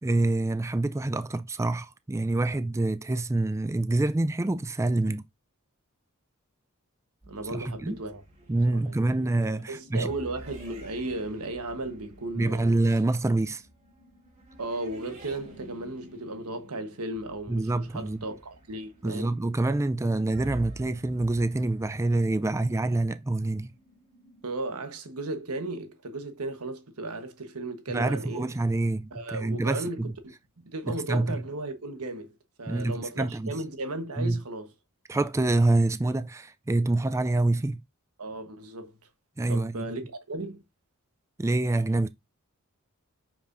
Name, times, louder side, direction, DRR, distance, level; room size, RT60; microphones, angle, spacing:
voice 1, 0.0-5.2 7.5-8.0 8.5-10.1 12.4-13.6 17.5-18.2 19.0-23.7 27.9-30.1 30.9-31.4 32.7-33.5 34.2-34.4 35.1-37.8 39.4-39.8 41.4-42.1, right 2 dB, 15° right, 0.3 m, -26 dB
sound 1, 7.2-24.7, right 1 dB, 30° right, 2.9 m, -50 dB
voice 2, 7.3-8.2 8.7-9.2 9.7-12.8 14.6-19.3 24.4-28.5 29.1-34.7 38.2-38.9 39.5-40.6, right 2 dB, 85° right, 1.2 m, -35 dB
6.5 x 5.9 x 2.6 m
head